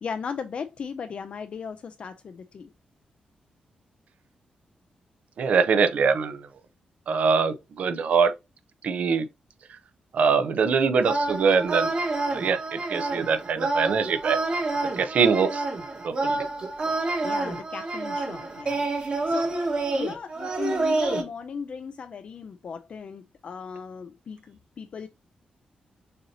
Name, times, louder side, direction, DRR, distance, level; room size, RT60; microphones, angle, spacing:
voice 1, 0.0-2.7 17.2-19.5 19.9-25.1, left 6 dB, 45° left, 0.4 m, -36 dB
voice 2, 5.4-6.5 7.1-8.3 8.8-9.3 9.7-9.8 10.1-11.9 12.3-14.4 14.9-15.7 16.0-16.4, right 5 dB, 65° right, 0.6 m, -23 dB
sound 1, 11.0-21.2, right 2 dB, 40° right, 1.3 m, -28 dB
6.6 x 2.8 x 2.7 m
wide cardioid pair, 160°, 3 cm